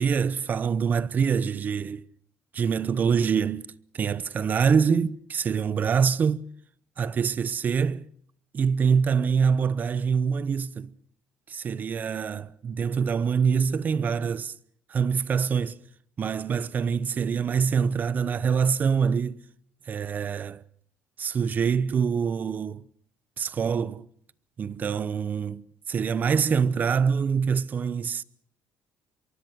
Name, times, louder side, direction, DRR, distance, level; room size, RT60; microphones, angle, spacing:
voice 1, 0.0-2.0 2.5-6.4 7.0-8.1 8.5-10.9 11.5-14.5 14.9-15.8 16.2-19.4 19.9-20.6 21.2-22.9 23.4-24.1 24.6-28.2, right 6 dB, 40° right, 0.9 m, -25 dB
24.0 x 23.0 x 6.3 m
cardioid pair, 115°, 5 cm